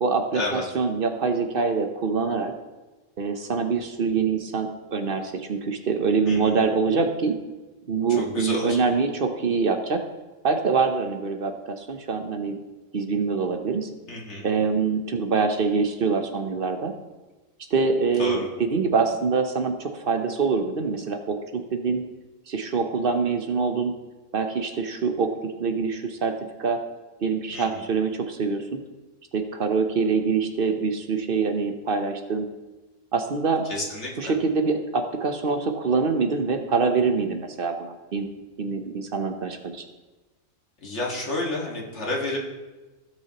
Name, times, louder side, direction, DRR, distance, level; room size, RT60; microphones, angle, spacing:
voice 1, 0.0-2.5 3.2-7.3 7.9-10.0 10.4-12.6 12.9-13.9 14.4-16.9 17.7-22.0 22.5-23.9 24.3-26.3 26.6-26.8 27.2-28.8 29.3-32.5 33.1-33.6 34.2-38.3 38.6-39.8, right 4 dB, 50° right, 6 dB, 0.9 m, -25 dB
voice 2, 6.3-6.6 8.2-8.8 14.1-14.5 18.2-18.5 27.5-27.8 33.7-34.3 40.8-42.4, left 2 dB, 65° left, -2 dB, 2.1 m, -30 dB
16.0 x 6.1 x 2.9 m, 1.2 s
omnidirectional pair, 1.3 m